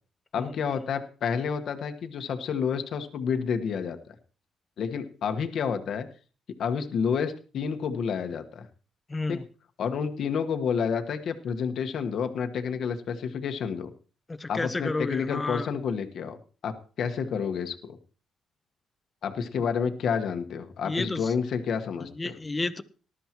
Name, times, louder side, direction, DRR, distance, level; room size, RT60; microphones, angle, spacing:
voice 1, 0.3-4.1 4.8-6.1 6.6-8.7 9.3-9.4 9.8-13.9 14.5-16.4 16.6-18.0 19.2-22.3, left 6 dB, 65° left, 1.3 m, -29 dB
voice 2, 9.1-9.4 14.4-15.7 20.8-21.2 22.2-22.8, left 3 dB, 20° left, 1.0 m, -30 dB
19.0 x 12.5 x 3.0 m
cardioid pair, 90°, 0 cm